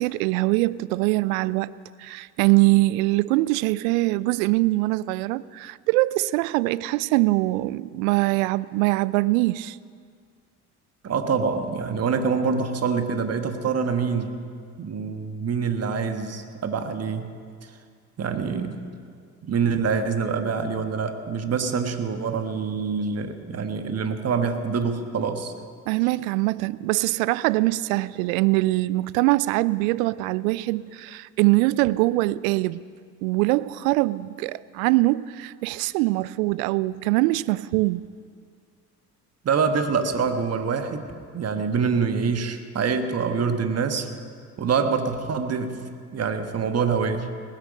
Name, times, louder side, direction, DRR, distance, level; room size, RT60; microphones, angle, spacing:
voice 1, 0.0-1.7 2.0-9.8 25.9-32.8 33.2-38.0, right 20 dB, 65° right, 0.5 m, -23 dB
voice 2, 11.0-14.3 14.8-17.3 17.6-17.7 18.2-18.8 19.4-25.5 39.4-41.1 41.3-44.1 44.6-45.8 46.1-47.3, right 5 dB, 35° right, 1.4 m, -25 dB
19.5 x 10.5 x 5.3 m
hypercardioid pair, 55°, 45 cm